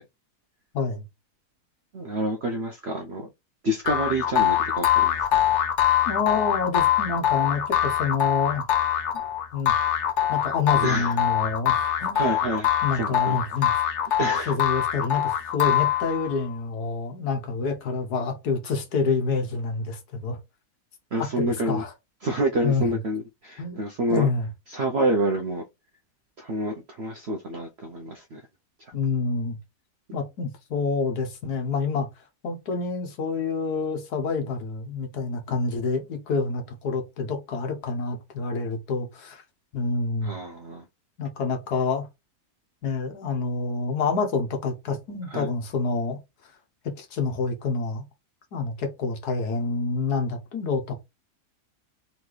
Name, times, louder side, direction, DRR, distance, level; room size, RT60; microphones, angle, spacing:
voice 1, 1.9-3.3 3.6-5.4 10.8-11.2 11.8-12.7 12.9-13.4 14.2-14.5 21.1-21.8 22.2-24.3 24.7-25.6 26.4-28.4 40.2-40.8 45.3-45.5, right 1 dB, 55° right, 0.8 m, -28 dB
sound 1, 3.9-16.4, left 11 dB, 55° left, 0.9 m, -23 dB
voice 2, 6.0-8.6 9.5-9.7 10.3-12.2 12.8-13.7 14.5-20.4 21.2-21.9 22.6-23.0 23.6-23.8 24.1-24.5 28.9-29.6 30.1-32.1 32.4-39.4 39.7-40.4 41.2-42.1 42.8-46.2 47.0-48.0 48.5-50.9, left 4 dB, 75° left, 1.6 m, -27 dB
4.0 x 3.5 x 3.2 m
omnidirectional pair, 1.7 m